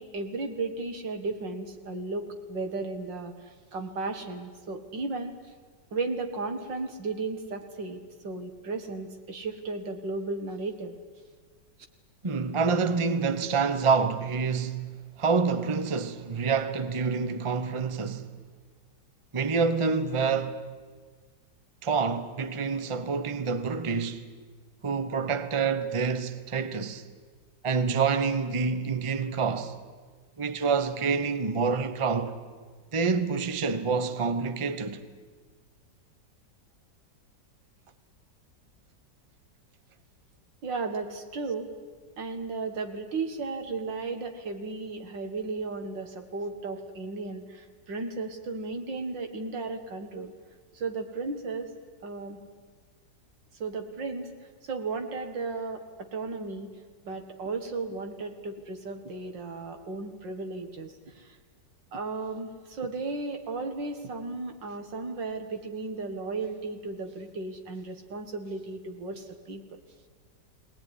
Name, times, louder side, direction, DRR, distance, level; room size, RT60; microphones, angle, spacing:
voice 1, 0.0-5.3 5.9-10.9 40.6-41.7 42.2-50.3 50.7-51.7 52.0-52.4 53.6-54.3 54.6-56.7 57.0-61.4 61.9-69.8, right 3 dB, 85° right, 2.5 m, -35 dB
voice 2, 12.2-18.3 19.3-20.6 21.8-24.2 24.8-27.0 27.6-29.8 30.4-32.4 32.9-35.0, right 5 dB, 25° right, 0.8 m, -27 dB
20.5 x 19.0 x 10.0 m
omnidirectional pair, 1.9 m